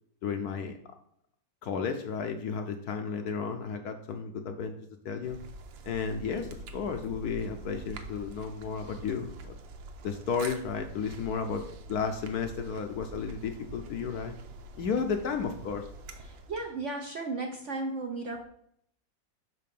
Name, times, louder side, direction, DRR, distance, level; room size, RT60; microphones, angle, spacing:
voice 1, 0.2-0.8 1.6-4.7 5.0-5.4 5.8-9.5 10.0-14.4 14.8-15.8, left 6 dB, 65° left, 6 dB, 1.0 m, -33 dB
sound 1, 5.2-16.7, right 2 dB, 90° right, 1.5 m, -45 dB
voice 2, 16.2-18.4, right 3 dB, 55° right, 2 dB, 0.8 m, -35 dB
6.0 x 4.7 x 5.2 m, 0.68 s
omnidirectional pair, 2.0 m